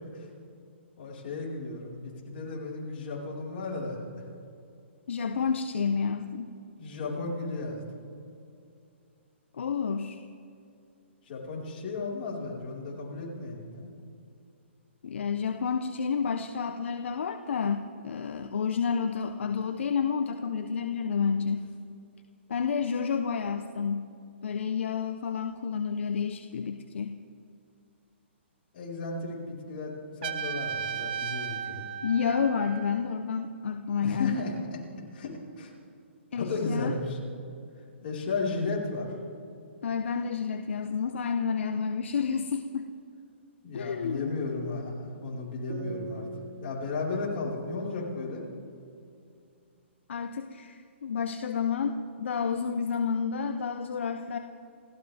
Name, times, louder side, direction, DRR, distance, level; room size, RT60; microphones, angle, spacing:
voice 1, 1.0-4.2 6.8-7.8 11.3-13.9 28.7-29.9 30.2-31.8 34.0-34.5 35.1-35.7 36.3-37.2 38.0-39.1 43.6-46.3 46.6-48.5, left 3 dB, 45° left, -4 dB, 4.8 m, -34 dB
voice 2, 5.1-6.5 9.5-10.2 15.0-21.6 22.5-24.1 24.4-27.2 32.0-34.4 36.3-36.9 39.8-42.9 43.7-44.5 50.1-54.4, left 6 dB, 70° left, 7 dB, 0.9 m, -30 dB
Trumpet, 30.2-33.1, right 8 dB, 50° right, 0.9 m, -35 dB
sound 1, 45.7-49.2, right 2 dB, 75° right, 3.0 m, -44 dB
29.0 x 14.0 x 3.5 m, 2.5 s
hypercardioid pair, 145°, 7 cm